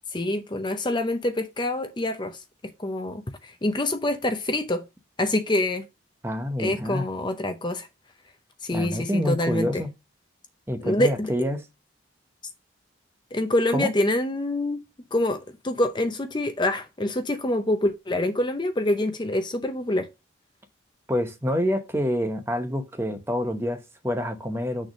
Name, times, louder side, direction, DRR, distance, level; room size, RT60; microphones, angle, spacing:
voice 1, 0.1-2.4 2.8-4.8 5.2-5.9 6.6-7.9 8.6-9.8 10.8-11.3 13.3-14.8 15.1-20.1, left 1 dB, 25° left, 0.6 m, -26 dB
voice 2, 6.2-7.1 8.7-9.9 10.7-11.6 13.7-13.9 21.1-24.9, equal, 10° right, 0.9 m, -27 dB
6.5 x 3.4 x 6.1 m
head